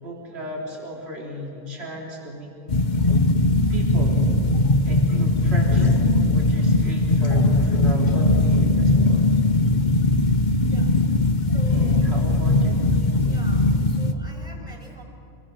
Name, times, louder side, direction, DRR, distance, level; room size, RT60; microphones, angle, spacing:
voice 1, 0.0-2.5 3.7-4.3 4.8-6.0 6.3-9.2 11.7-12.8, equal, 45° right, -2 dB, 3.6 m, -35 dB
sound 1, 2.7-14.1, left 2 dB, 35° left, 1.0 m, -19 dB
voice 2, 11.4-12.1 13.3-15.0, equal, 5° left, 0 dB, 6.1 m, -44 dB
27.5 x 21.0 x 6.4 m, 2.9 s
omnidirectional pair, 1.5 m